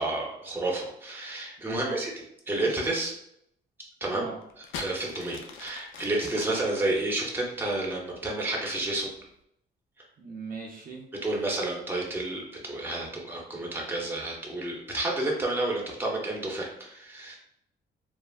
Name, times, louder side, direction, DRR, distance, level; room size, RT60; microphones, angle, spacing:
voice 1, 0.0-2.1 2.5-3.1 4.0-4.2 4.8-9.1 11.2-17.4, right 2 dB, 10° right, -2 dB, 0.7 m, -30 dB
voice 2, 1.7-2.0 4.1-4.4 10.2-11.1, right 4 dB, 45° right, -1 dB, 0.6 m, -39 dB
sound 1, 4.4-8.1 8.9-9.3, left 5 dB, 80° left, 0.4 m, -42 dB
3.2 x 2.1 x 2.4 m, 0.74 s
cardioid pair, 90°, 20 cm